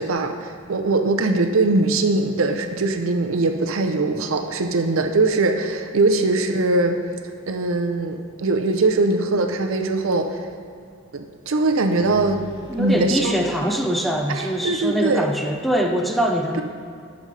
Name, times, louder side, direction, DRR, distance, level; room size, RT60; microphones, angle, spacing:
voice 1, 0.0-7.0 7.5-10.5 11.1-12.5 12.8-13.3 13.6-13.8 14.3-15.3, right 2 dB, 70° right, 5 dB, 0.6 m, -21 dB
sound 1, 7.2-7.5 10.1-10.2 11.7-13.6, left 1 dB, 70° left, 1.1 m, -41 dB
voice 2, 12.7-16.6, right 1 dB, ahead, 2 dB, 0.4 m, -23 dB
11.5 x 5.1 x 3.3 m, 2.4 s
head